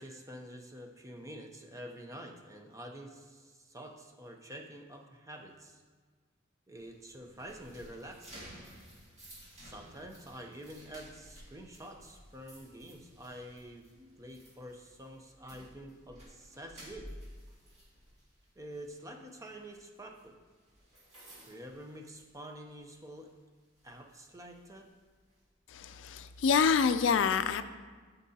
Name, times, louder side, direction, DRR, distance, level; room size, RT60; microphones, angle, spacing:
voice 1, 0.0-5.8 6.7-8.5 9.6-13.9 14.2-17.1 18.6-20.3 21.5-23.3 23.8-24.9, right 1 dB, 15° right, 3 dB, 0.6 m, -47 dB
sound 1, 6.7-22.7 23.0-23.3 23.8-25.4, equal, 35° right, 2.2 m, -54 dB
voice 2, 25.7-27.6, left 6 dB, 70° left, 10 dB, 0.4 m, -27 dB
12.0 x 5.3 x 2.8 m, 1.5 s
head